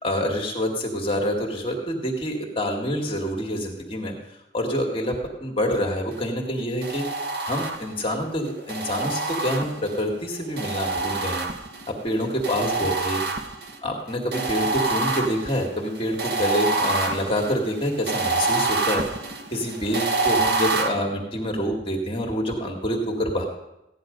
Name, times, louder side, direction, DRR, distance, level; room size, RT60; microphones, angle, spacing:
voice 1, 0.0-4.1 4.5-7.0 7.4-11.4 12.0-13.2 13.8-19.0 19.5-23.5, equal, 30° left, 0 dB, 2.0 m, -26 dB
sound 1, 6.8-8.1 8.7-10.0 10.6-11.9 12.4-13.8 14.3-20.9, right 3 dB, 60° right, 1.4 m, -26 dB
16.0 x 10.5 x 5.2 m, 0.90 s
head